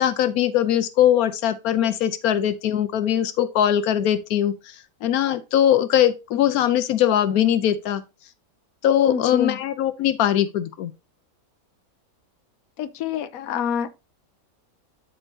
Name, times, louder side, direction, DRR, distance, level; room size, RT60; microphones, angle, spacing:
voice 1, 0.0-4.7 5.0-8.0 8.8-10.9, left 10 dB, 90° left, 1.2 m, -21 dB
voice 2, 9.1-9.6 12.8-13.9, left 8 dB, 75° left, 1.2 m, -26 dB
12.0 x 4.5 x 2.7 m
omnidirectional pair, 1.5 m